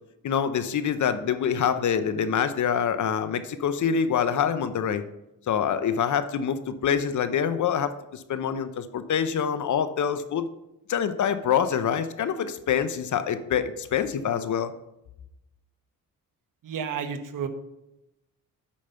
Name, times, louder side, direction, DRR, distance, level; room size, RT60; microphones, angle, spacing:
voice 1, 0.2-5.0 5.5-10.5 10.9-14.7, left 8 dB, 60° left, 11 dB, 0.8 m, -25 dB
voice 2, 16.6-17.5, right 7 dB, 65° right, 8 dB, 1.1 m, -31 dB
8.5 x 5.2 x 5.7 m, 0.90 s
cardioid pair, 90°, 34 cm